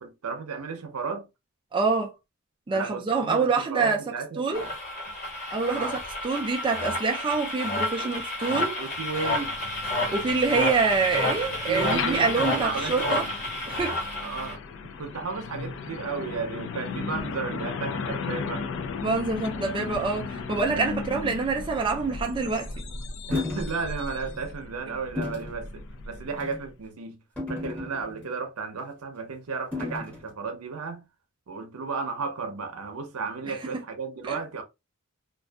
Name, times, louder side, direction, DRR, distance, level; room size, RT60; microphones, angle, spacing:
voice 1, 0.0-1.3 2.7-4.7 5.7-6.0 8.0-8.1 8.5-9.5 11.7-13.3 14.2-14.6 15.0-18.7 20.7-21.0 23.3-27.2 27.5-31.0 31.5-34.6, right 4 dB, 85° right, 0.6 m, -34 dB
voice 2, 1.7-2.1 2.7-4.0 4.4-4.6 5.5-8.7 10.1-13.3 13.7-14.0 19.0-22.7 33.5-33.6 34.3-34.4, right 4 dB, 20° right, 0.3 m, -26 dB
sound 1, 4.5-14.5, left 1 dB, 40° left, 1.1 m, -30 dB
Truck, 9.0-26.7, left 4 dB, 60° left, 0.3 m, -36 dB
sound 2, 23.3-23.7 24.2-24.4 25.2-25.5 26.3-26.6 27.4-28.3 29.7-30.2, left 2 dB, 5° left, 0.7 m, -32 dB
2.5 x 2.3 x 2.2 m
head